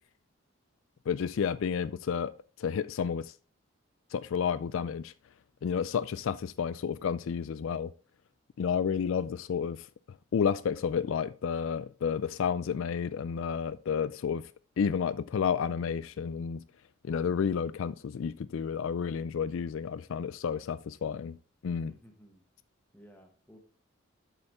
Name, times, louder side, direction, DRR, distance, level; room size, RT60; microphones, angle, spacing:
voice 1, 1.1-2.3 2.6-3.3 4.1-5.1 5.6-7.9 8.6-9.9 10.3-14.5 14.8-16.6 17.0-21.4 21.6-21.9, left 7 dB, 75° left, 0.3 m, -31 dB
voice 2, 21.9-22.4 22.9-23.6, equal, 10° left, 1.5 m, -56 dB
8.0 x 5.6 x 4.1 m
head